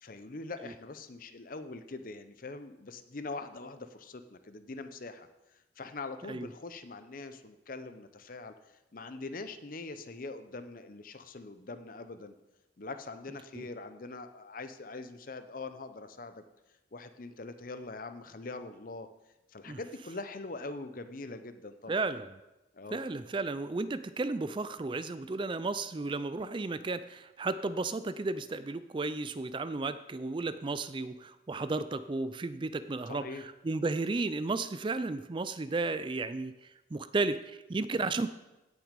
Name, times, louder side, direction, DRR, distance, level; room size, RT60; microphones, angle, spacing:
voice 1, 0.0-5.3 5.8-8.5 8.9-12.3 12.8-16.4 16.9-19.1 19.5-21.9 22.7-23.0 33.1-33.5, left 3 dB, 45° left, 10 dB, 0.7 m, -43 dB
voice 2, 21.9-22.3 22.9-36.5 36.9-38.3, right 3 dB, 25° right, 13 dB, 0.4 m, -33 dB
16.5 x 6.2 x 5.2 m, 1.0 s
head